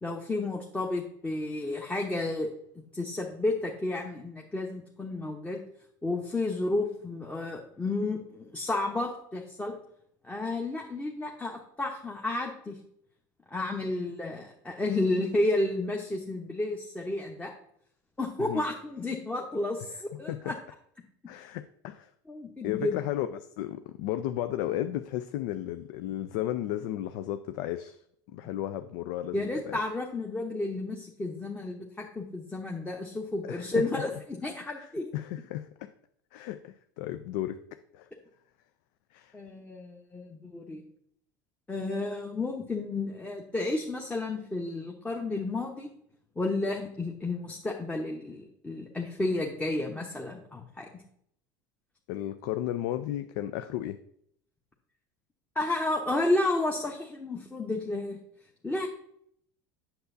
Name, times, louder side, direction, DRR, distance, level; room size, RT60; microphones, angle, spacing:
voice 1, 0.0-2.5 2.7-5.6 6.0-9.7 10.2-12.8 13.5-17.5 18.2-20.6 22.3-23.0 29.3-35.1 39.3-40.8 41.7-45.9 46.4-51.0 55.5-58.2 58.6-58.9, left 2 dB, 15° left, 0 dB, 0.9 m, -32 dB
voice 2, 21.3-22.1 22.6-28.0 28.3-29.8 33.4-34.0 34.8-35.9 36.3-37.6 37.9-38.1 39.1-39.3 52.1-54.0, left 12 dB, 70° left, 10 dB, 0.4 m, -34 dB
7.9 x 6.8 x 2.6 m, 0.69 s
supercardioid pair, 95°, 10 cm